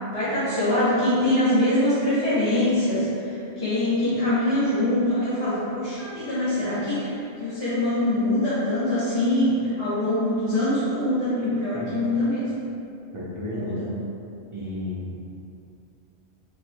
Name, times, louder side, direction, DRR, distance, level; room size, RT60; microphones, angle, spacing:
voice 1, 0.1-12.4 13.4-13.9, left 1 dB, 60° left, -11 dB, 1.6 m, -24 dB
voice 2, 13.1-13.8 14.5-15.1, left 1 dB, 30° right, -7 dB, 0.8 m, -32 dB
3.9 x 3.5 x 3.0 m, 2.6 s
omnidirectional pair, 1.2 m